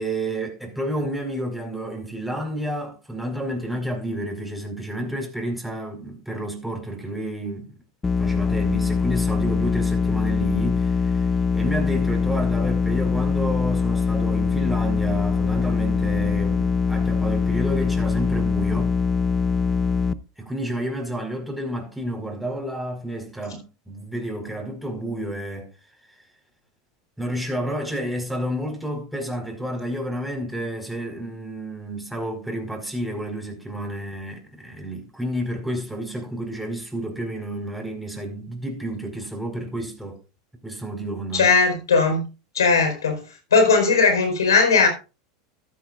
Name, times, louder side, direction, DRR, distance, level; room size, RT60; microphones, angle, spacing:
voice 1, 0.0-7.7 8.2-11.2 11.5-19.0 20.4-25.7 27.2-40.2 40.6-41.5, right 1 dB, ahead, 4.9 m, -30 dB
sound 1, 8.0-20.1, left 5 dB, 15° left, 0.7 m, -22 dB
voice 2, 41.3-42.2 42.5-43.2 43.5-44.9, left 4 dB, 90° left, 4.6 m, -18 dB
14.0 x 13.0 x 2.5 m
hypercardioid pair, 100°, 2 cm